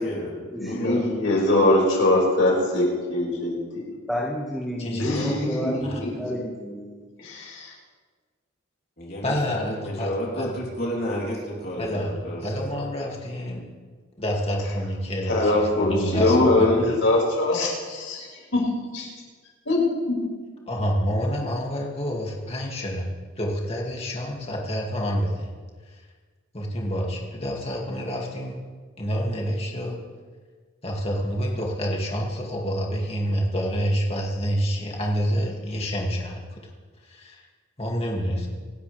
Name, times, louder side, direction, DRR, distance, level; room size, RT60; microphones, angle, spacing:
voice 1, 0.0-0.3 0.7-1.0 5.1-5.3 9.0-12.7, equal, 50° left, -3 dB, 3.5 m, -31 dB
voice 2, 0.6-3.8 5.0-6.3 7.2-7.7 15.3-18.6 18.9-19.1 19.7-20.2, left 2 dB, 75° left, -3 dB, 5.7 m, -22 dB
voice 3, 4.1-7.1, equal, ahead, -6 dB, 1.9 m, -30 dB
voice 4, 4.8-5.2 5.8-6.0 9.2-10.5 11.8-13.6 14.2-17.0 20.7-23.0 23.4-25.5 25.9-26.0 26.5-28.6 29.0-30.0 30.8-36.6 37.0-37.4 37.8-38.5, equal, 30° left, -2 dB, 2.4 m, -28 dB
26.5 x 12.5 x 3.5 m, 1.5 s
head